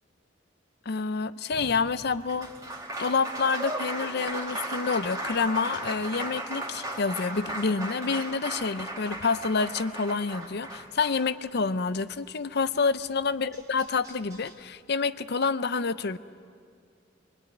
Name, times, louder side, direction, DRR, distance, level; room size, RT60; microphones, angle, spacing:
voice 1, 0.9-2.5 3.0-16.2, left 4 dB, 60° left, 14 dB, 0.7 m, -28 dB
Applause, 1.5-11.8 13.1-13.2 13.5-14.5, right 1 dB, 20° right, 2.5 m, -36 dB
24.0 x 21.0 x 9.4 m, 2.3 s
head